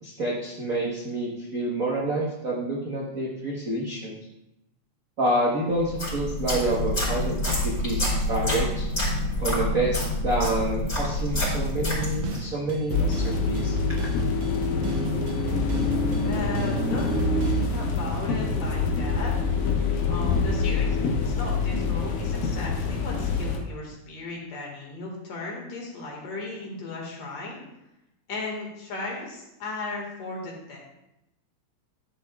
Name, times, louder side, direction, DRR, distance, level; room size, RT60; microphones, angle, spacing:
voice 1, 0.0-4.2 5.2-8.9 9.4-13.8, right 1 dB, 80° right, -5 dB, 0.7 m, -28 dB
sound 1, 5.8-12.5, left 1 dB, 25° left, 3.7 m, -27 dB
sound 2, 11.0-11.1 11.4-11.8 12.0-17.8, right 3 dB, 65° right, 1.8 m, -36 dB
sound 3, 12.9-23.6, left 4 dB, 75° left, 2.3 m, -25 dB
voice 2, 16.2-19.3 20.1-27.6 28.3-30.8, left 3 dB, 55° left, -2 dB, 2.7 m, -36 dB
12.0 x 7.7 x 2.3 m, 0.90 s
omnidirectional pair, 3.7 m